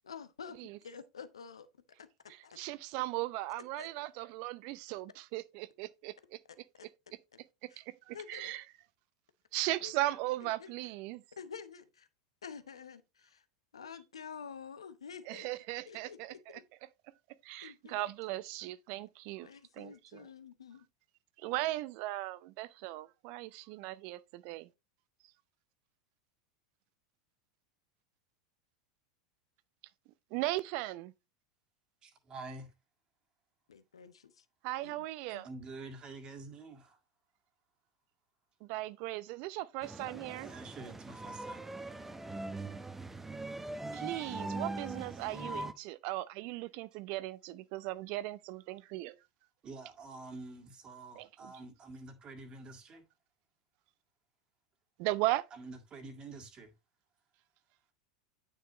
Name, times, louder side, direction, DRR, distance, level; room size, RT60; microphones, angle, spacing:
voice 1, 0.1-1.7 2.0-2.1 2.4-2.6 3.8-3.9 6.8-6.9 7.7-7.8 8.1-8.5 9.8-9.9 10.4-10.7 11.4-12.1 12.4-13.4 13.7-15.4 15.8-16.6 17.6-18.0 19.4-20.8 33.7-34.4 34.8-35.0 35.3-35.5, left 6 dB, 80° left, 0.9 m, -49 dB
voice 2, 2.3-6.4 7.6-8.6 9.5-11.2 15.3-16.6 17.4-19.5 19.7-20.3 21.4-24.7 30.3-31.1 34.6-35.5 38.6-40.5 43.9-49.2 51.2-51.5 55.0-55.4, right 17 dB, 55° right, 0.6 m, -37 dB
voice 3, 32.0-32.7 35.4-37.0 40.4-41.7 45.3-45.4 49.6-53.0 55.5-56.7, right 3 dB, 30° right, 2.0 m, -47 dB
sound 1, 39.8-45.7, right 2 dB, 10° right, 0.9 m, -41 dB
9.5 x 6.4 x 3.0 m
hypercardioid pair, 90°, 3 cm